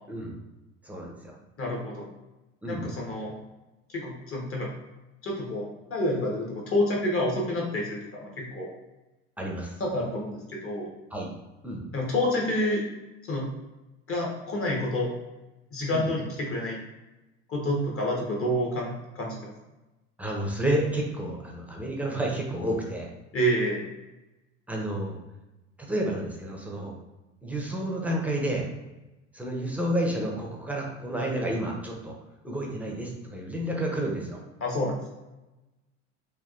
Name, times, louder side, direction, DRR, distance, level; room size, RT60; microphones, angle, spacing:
voice 1, 0.8-1.3 2.6-2.8 9.4-9.7 11.1-11.3 11.6-11.8 15.9-16.1 20.2-23.1 24.7-25.1 25.8-26.9 27.4-28.7 29.3-32.2 32.4-34.4, right 1 dB, 5° right, -1 dB, 0.6 m, -30 dB
voice 2, 1.6-2.1 2.7-3.3 3.9-4.7 5.2-5.6 5.9-8.7 9.8-10.9 11.9-12.8 13.3-13.4 14.1-15.1 15.7-16.8 17.5-19.5 23.3-23.8 34.6-35.0, left 1 dB, 35° left, -2 dB, 1.1 m, -28 dB
3.3 x 2.3 x 2.5 m, 1.0 s
hypercardioid pair, 70°, 38 cm